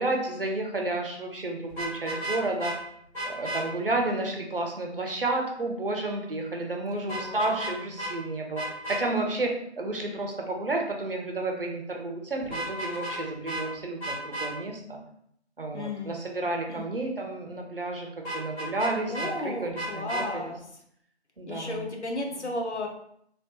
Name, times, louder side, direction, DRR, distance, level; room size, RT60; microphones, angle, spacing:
voice 1, 0.0-2.7 3.2-8.6 8.9-15.0 15.6-20.5 21.4-21.9, right 2 dB, 55° right, 2 dB, 0.7 m, -31 dB
Vehicle horn car horn honking, 1.7-2.7 3.1-3.6 7.1-7.7 8.0-8.1 8.5-9.0 12.4-13.2 13.4-13.6 14.0-14.5 18.2-19.3 19.7-20.2, right 1 dB, 5° left, 1.3 m, -33 dB
voice 2, 6.9-7.6 15.7-16.1 16.7-16.8 19.1-20.6 21.5-22.9, left 2 dB, 75° left, 1 dB, 0.9 m, -34 dB
3.0 x 2.8 x 2.9 m, 0.70 s
figure-of-eight pair, 160°, 34 cm